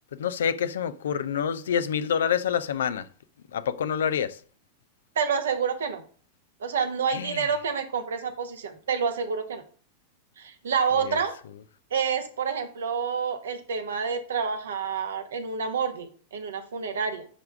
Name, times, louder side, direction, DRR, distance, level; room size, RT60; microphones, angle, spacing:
voice 1, 0.2-3.0 3.5-4.4 7.1-7.4 11.1-11.2, left 8 dB, 65° left, 0.5 m, -27 dB
voice 2, 5.1-6.0 6.6-9.6 10.4-11.4 11.9-17.3, right 6 dB, 65° right, 1.2 m, -28 dB
9.9 x 3.5 x 4.8 m
figure-of-eight pair, 90°, 0 cm